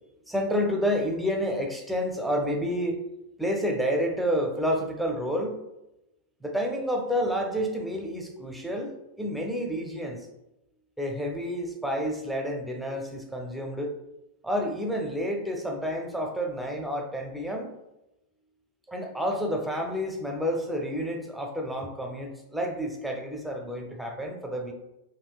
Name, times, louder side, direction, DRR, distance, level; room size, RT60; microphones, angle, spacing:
voice 1, 0.3-3.0 3.4-5.6 6.4-8.9 9.2-10.3 11.0-13.9 14.4-17.7 18.9-24.7, equal, ahead, 2 dB, 0.5 m, -29 dB
3.6 x 2.6 x 2.3 m, 0.91 s
hypercardioid pair, 105°, 0 cm